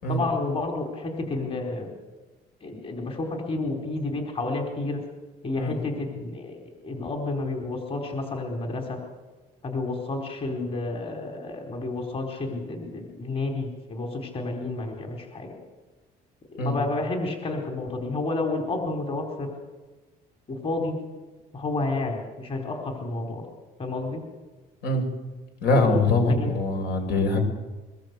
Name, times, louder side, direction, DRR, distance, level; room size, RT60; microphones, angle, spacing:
voice 1, 0.1-1.9 2.6-5.0 5.4-9.0 9.6-15.6 16.5-19.5 20.5-21.0 21.5-23.4 23.8-24.2 26.3-26.5, left 2 dB, 35° left, 2 dB, 4.5 m, -30 dB
voice 2, 25.6-27.4, left 2 dB, 70° left, 5 dB, 6.4 m, -23 dB
23.0 x 21.0 x 8.3 m, 1.2 s
cardioid pair, 110°, 17 cm